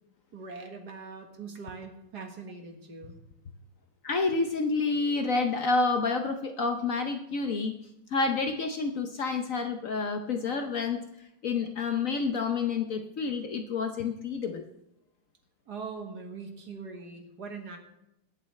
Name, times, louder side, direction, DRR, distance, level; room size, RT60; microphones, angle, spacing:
voice 1, 0.3-3.2 15.7-17.8, right 4 dB, 50° right, 4 dB, 1.8 m, -41 dB
voice 2, 4.0-7.7 8.1-11.0 11.4-14.6, left 4 dB, 70° left, 5 dB, 0.7 m, -29 dB
22.0 x 8.1 x 3.2 m, 0.87 s
omnidirectional pair, 2.4 m